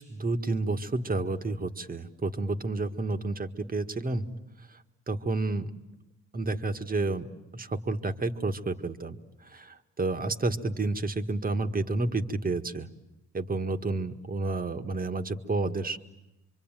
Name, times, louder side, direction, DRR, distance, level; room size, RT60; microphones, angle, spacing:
voice 1, 0.0-4.3 5.1-5.7 6.3-7.3 7.5-9.2 9.5-12.9 13.3-16.0, right 3 dB, 30° right, 8 dB, 1.8 m, -30 dB
26.5 x 24.5 x 9.1 m, 0.94 s
cardioid pair, 90°, 30 cm